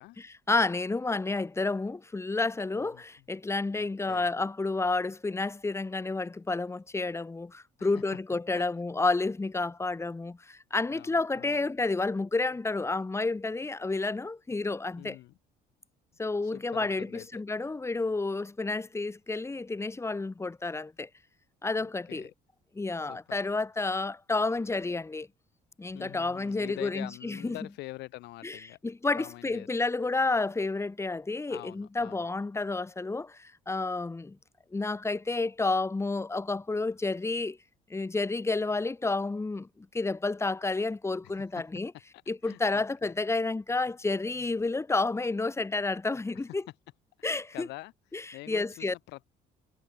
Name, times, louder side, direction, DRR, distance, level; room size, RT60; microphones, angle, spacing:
voice 1, 0.0-15.2 16.2-21.1 21.6-22.3 22.7-25.3 25.8-27.6 28.4-34.4 34.7-37.6 37.9-41.9 42.3-46.6 47.2-47.7 48.1-48.9, left 3 dB, 15° left, 2.0 m, -30 dB
voice 2, 3.7-4.3 7.8-7.9 8.5-8.6 10.9-11.6 15.0-15.4 16.4-17.4 21.8-22.3 23.1-23.2 25.9-28.8 29.2-29.7 31.5-32.3 41.2-41.6 42.4-43.1 47.5-47.9 48.3-49.4, left 19 dB, 85° left, 7.5 m, -45 dB
cardioid pair, 110°, 17 cm